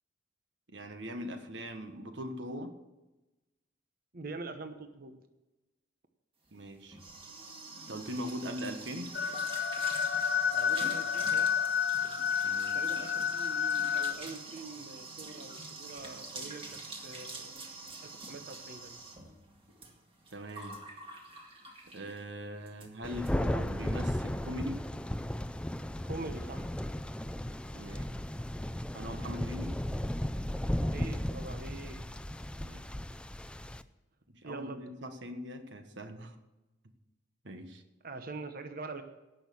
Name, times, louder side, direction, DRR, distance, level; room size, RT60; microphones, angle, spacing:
voice 1, 0.7-2.7 6.5-7.0 7.9-9.2 12.4-12.8 20.3-20.8 21.9-24.8 27.7-28.1 28.9-29.7 32.6-32.9 34.3-36.4 37.4-37.8, equal, 75° right, 7 dB, 1.5 m, -41 dB
voice 2, 4.1-5.1 10.5-11.5 12.7-16.7 17.0-17.6 18.0-19.0 26.0-26.7 30.8-32.0 34.4-34.8 38.0-39.0, right 3 dB, 50° right, 7 dB, 1.0 m, -44 dB
sound 1, 6.5-22.3 22.7-22.9 23.2-23.3 23.6-24.0, right 3 dB, 30° right, 2.0 m, -46 dB
sound 2, 9.1-14.1, left 7 dB, 60° left, 0.9 m, -30 dB
Thunder, 23.0-33.8, left 1 dB, 5° left, 0.4 m, -35 dB
17.0 x 6.4 x 7.1 m, 1.0 s
head